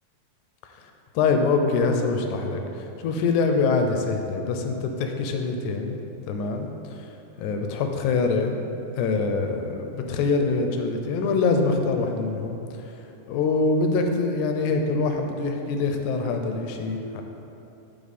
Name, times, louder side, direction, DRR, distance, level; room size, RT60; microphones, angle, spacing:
voice 1, 1.2-6.0 6.3-7.1 7.4-8.6 9.0-12.6 12.9-13.0 13.3-17.2, left 4 dB, 90° left, 4 dB, 2.0 m, -24 dB
9.4 x 3.8 x 4.0 m, 2.9 s
omnidirectional pair, 3.3 m